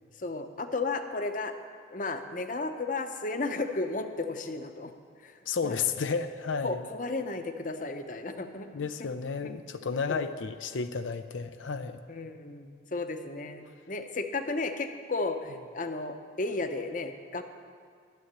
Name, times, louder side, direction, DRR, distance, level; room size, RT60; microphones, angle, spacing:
voice 1, 0.2-1.5 1.9-4.9 5.2-5.4 5.6-5.8 6.6-8.7 9.0-9.1 9.4-9.5 10.1-10.3 12.1-17.4, left 3 dB, 45° left, 7 dB, 0.8 m, -34 dB
voice 2, 5.5-6.9 8.7-12.0, left 5 dB, 85° left, 9 dB, 0.6 m, -32 dB
12.5 x 7.8 x 10.0 m, 2.1 s
head